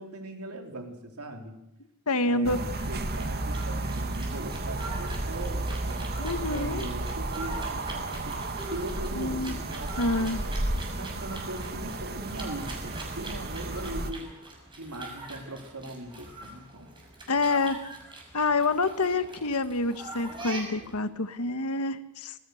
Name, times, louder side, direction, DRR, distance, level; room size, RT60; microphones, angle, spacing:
voice 1, 0.0-1.6 2.2-6.1 6.5-8.4 8.7-10.5 11.0-14.3 14.8-16.9, right 1 dB, 75° right, 4 dB, 4.1 m, -40 dB
voice 2, 2.1-2.6 6.2-6.9 9.1-9.5 10.0-10.4 17.3-17.8 18.3-22.3, left 3 dB, 75° left, 11 dB, 1.5 m, -27 dB
sound 1, 2.4-14.1, right 2 dB, 45° right, 1.9 m, -33 dB
sound 2, 2.8-21.0, right 2 dB, 20° right, 6.3 m, -43 dB
26.0 x 20.5 x 6.6 m, 0.86 s
head